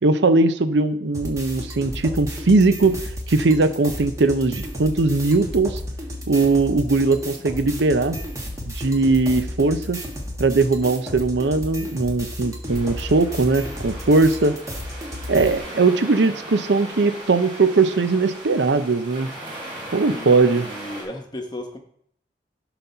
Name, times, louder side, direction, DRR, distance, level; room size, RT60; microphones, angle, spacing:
voice 1, 0.0-5.8 6.3-8.2 8.7-10.0 10.4-14.6 15.3-19.3 19.9-20.7, right 3 dB, 70° right, 11 dB, 0.6 m, -19 dB
sound 1, 1.1-15.6, equal, 15° right, 1.2 m, -33 dB
sound 2, 12.7-21.0, right 1 dB, 40° right, 3.4 m, -38 dB
voice 2, 20.1-21.8, left 1 dB, 25° left, 4 dB, 1.0 m, -35 dB
12.0 x 4.1 x 5.6 m, 0.68 s
head